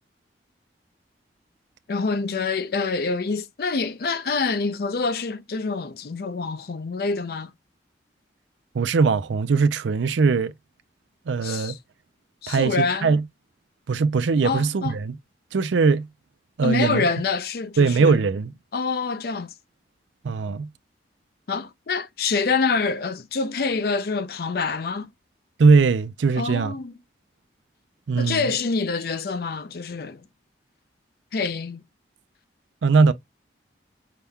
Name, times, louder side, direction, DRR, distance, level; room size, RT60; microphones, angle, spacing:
voice 1, 1.9-7.5 11.4-11.8 12.4-13.2 14.4-15.0 16.6-18.2 18.7-19.5 21.5-25.1 26.4-27.0 28.2-30.2 31.3-31.8, left 4 dB, 55° left, 0.5 m, -26 dB
voice 2, 8.7-10.5 11.3-11.8 12.5-13.2 13.9-15.1 15.5-16.1 16.6-17.1 17.8-18.5 20.2-20.7 25.6-26.8 28.1-28.5 32.8-33.1, right 4 dB, 90° right, 0.4 m, -20 dB
5.7 x 2.2 x 3.5 m
head